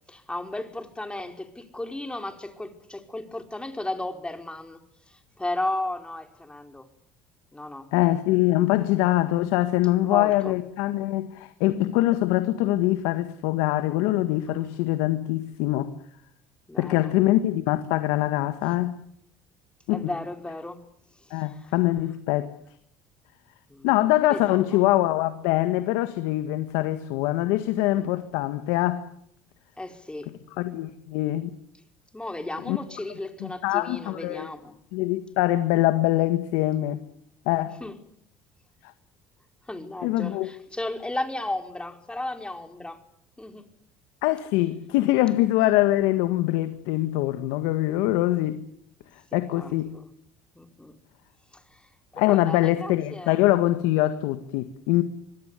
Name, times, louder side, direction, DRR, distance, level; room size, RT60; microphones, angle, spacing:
voice 1, 0.1-6.9 7.5-7.9 10.0-10.5 14.5-14.6 16.7-17.1 19.9-20.8 21.2-21.7 23.7-23.9 24.3-24.8 27.9-28.1 29.8-30.3 32.1-34.7 37.8-38.0 39.7-43.0 43.4-43.7 49.3-50.1 50.5-51.0 51.5-53.4, left 2 dB, 10° left, 4.7 m, -35 dB
voice 2, 7.9-15.9 16.8-19.0 19.9-20.1 21.3-22.5 23.8-29.0 30.6-31.5 32.7-32.8 33.4-34.5 34.9-37.0 37.4-37.8 40.0-40.5 44.2-48.6 49.3-49.9 52.1-55.0, left 16 dB, 80° left, 1.7 m, -23 dB
26.0 x 21.0 x 9.9 m
hypercardioid pair, 75°, 9 cm